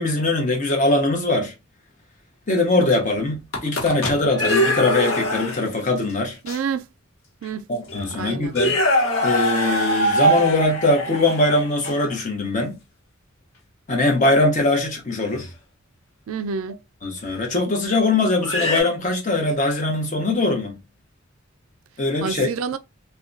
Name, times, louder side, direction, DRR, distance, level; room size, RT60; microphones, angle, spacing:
voice 1, 0.0-1.5 2.5-6.4 7.7-8.8 9.2-12.8 13.9-15.5 17.0-20.8 22.0-22.5, left 2 dB, 35° left, 0.8 m, -21 dB
sound 1, 3.3-5.8 6.5-6.6 7.4-7.5 7.9-8.1 8.5-12.1 15.3-15.5 17.2-17.3 18.4-18.8, equal, 85° left, 1.0 m, -23 dB
voice 2, 6.4-6.8 7.4-7.7 8.1-8.5 16.3-16.8 22.2-22.8, right 6 dB, 85° right, 0.3 m, -28 dB
2.7 x 2.2 x 2.5 m
head